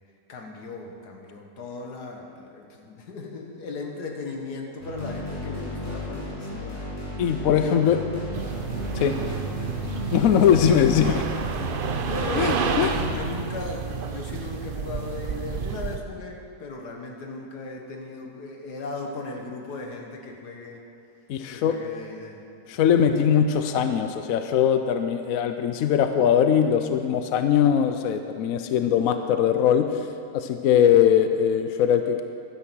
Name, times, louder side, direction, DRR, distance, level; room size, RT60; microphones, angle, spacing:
voice 1, 0.3-6.8 7.5-8.1 9.0-9.3 12.1-20.8 21.5-22.5, left 3 dB, 85° left, 2 dB, 1.9 m, -37 dB
sound 1, 4.8-13.3, left 1 dB, 50° left, 4.2 m, -34 dB
voice 2, 7.2-8.0 8.9-9.2 10.1-11.2 12.3-12.9 21.3-21.8 22.7-30.1 30.3-32.2, left 8 dB, 70° left, 7 dB, 1.0 m, -21 dB
sound 2, 8.3-16.0, right 6 dB, 60° right, 0.5 m, -30 dB
12.5 x 9.6 x 6.2 m, 2.4 s
omnidirectional pair, 1.7 m